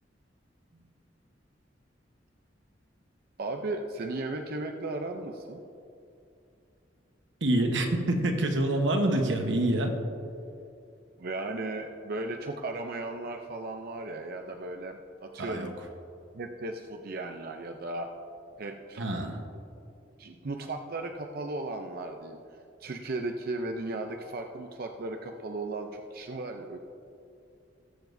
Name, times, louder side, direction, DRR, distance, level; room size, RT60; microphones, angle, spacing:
voice 1, 3.4-5.6 11.2-15.7 16.3-18.1 18.6-19.0 20.2-22.4 22.8-26.8, right 2 dB, 55° right, 4 dB, 0.5 m, -36 dB
voice 2, 7.4-9.9 15.4-15.7 19.0-19.4, right 1 dB, 90° right, 4 dB, 1.1 m, -26 dB
19.0 x 6.9 x 2.7 m, 2.5 s
head